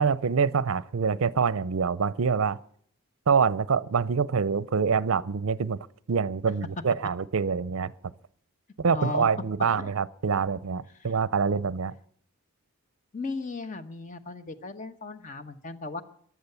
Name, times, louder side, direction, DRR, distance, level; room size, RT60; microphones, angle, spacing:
voice 1, 0.0-2.6 3.3-5.8 6.1-7.9 8.8-11.9, right 5 dB, 70° right, 0.5 m, -25 dB
voice 2, 8.9-9.3 9.8-9.9 11.0-11.1 13.1-16.0, left 3 dB, 35° left, 1.1 m, -36 dB
15.0 x 11.0 x 6.9 m
head